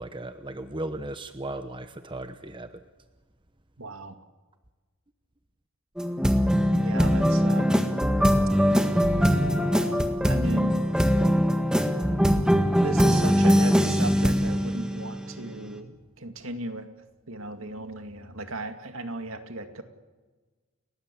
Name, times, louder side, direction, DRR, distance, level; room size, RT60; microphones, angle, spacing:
voice 1, 0.0-2.8, right 1 dB, 20° right, 9 dB, 1.0 m, -36 dB
voice 2, 3.8-4.2 6.7-7.9 10.2-10.9 12.8-16.9 17.3-19.8, right 2 dB, 70° right, 7 dB, 2.3 m, -36 dB
sound 1, 6.0-15.6, equal, 5° right, 1.8 m, -22 dB
30.0 x 18.5 x 8.5 m, 1.3 s
head